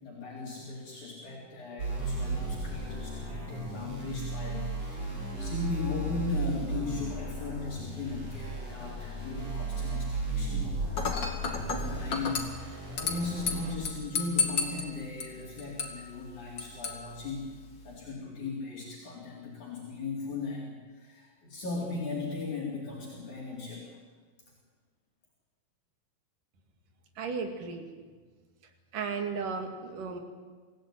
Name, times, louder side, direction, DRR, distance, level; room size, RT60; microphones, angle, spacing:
voice 1, 0.0-4.7 4.9-10.7 11.7-17.5 17.8-23.9, left 3 dB, 65° left, -4 dB, 5.2 m, -38 dB
sound 1, 1.8-13.7, right 2 dB, 50° right, 8.7 m, -35 dB
Dishes pots and pans / Glass, 11.0-18.0, left 5 dB, 35° left, 2.8 m, -35 dB
voice 2, 27.2-27.9 28.9-30.2, right 5 dB, 80° right, 4 dB, 4.0 m, -34 dB
26.0 x 16.5 x 9.2 m, 1.5 s
omnidirectional pair, 3.7 m